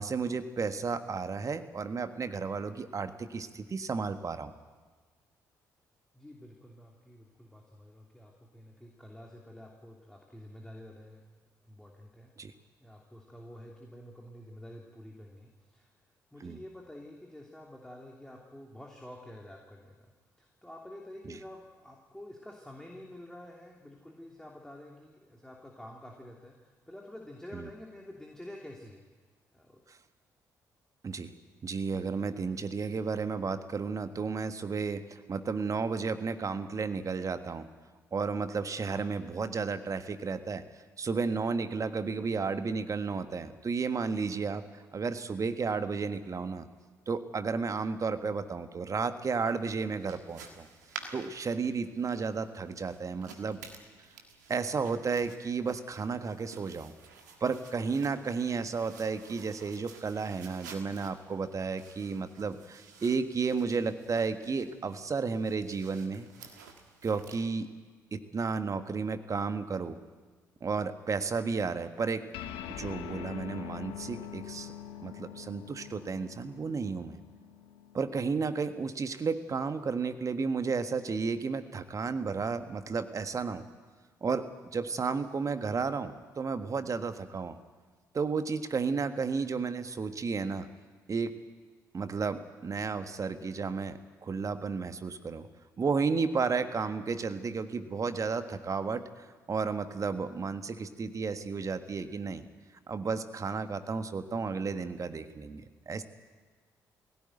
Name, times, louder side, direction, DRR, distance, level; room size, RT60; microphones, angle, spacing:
voice 1, 0.0-4.5 12.4-12.5 16.4-16.6 21.3-21.4 27.5-27.7 29.9-30.0 31.0-31.3 31.6-37.7 38.1-40.6 41.0-46.7 47.1-50.7 51.1-53.6 54.5-56.9 57.4-66.3 67.0-67.7 68.1-70.0 70.6-72.3 72.7-74.7 75.0-77.2 77.9-83.6 84.2-87.6 88.1-90.7 91.1-91.3 91.9-95.5 95.8-102.5 102.9-106.0, right 5 dB, 35° right, 9 dB, 1.5 m, -33 dB
voice 2, 6.1-11.2 11.7-12.3 12.8-15.9 16.3-20.1 20.4-29.0 29.5-29.8, left 1 dB, 5° left, -1 dB, 3.0 m, -49 dB
sound 1, 49.2-67.4, right 5 dB, 80° right, 1.6 m, -52 dB
sound 2, 72.3-79.1, left 10 dB, 65° left, 1.2 m, -44 dB
21.5 x 17.0 x 9.2 m, 1.4 s
figure-of-eight pair, 45°, 9 cm